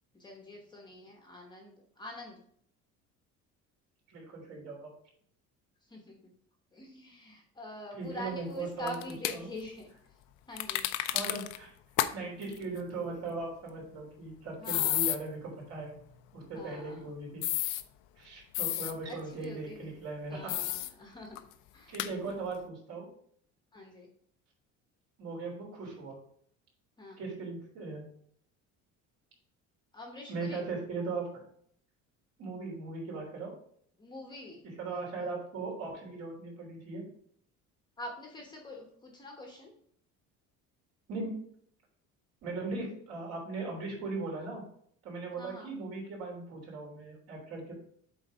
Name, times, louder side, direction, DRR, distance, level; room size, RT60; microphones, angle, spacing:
voice 1, 0.1-2.4 5.9-6.2 6.7-9.9 10.5-10.8 14.6-15.1 16.5-17.0 19.1-20.0 20.3-21.4 21.7-21.9 23.7-24.1 27.0-27.2 29.9-30.6 34.0-34.6 38.0-39.7 45.4-45.7, left 1 dB, 15° left, 1 dB, 1.0 m, -45 dB
voice 2, 4.1-4.9 8.0-9.5 11.1-11.7 12.1-15.9 16.3-17.4 18.2-20.6 21.9-23.1 25.2-26.2 27.2-28.0 30.3-31.4 32.4-33.5 34.6-37.0 41.1-41.3 42.4-44.6 45.0-47.7, right 3 dB, 50° right, -1 dB, 3.2 m, -38 dB
sound 1, 8.9-9.4 10.6-11.6 12.0-12.1 12.4-12.5 14.6-15.2 17.4-17.8 18.5-18.9 20.5-20.9 21.4-21.5 21.9-22.1, left 15 dB, 90° left, 0.6 m, -31 dB
7.9 x 4.0 x 5.1 m, 0.64 s
cardioid pair, 170°, 31 cm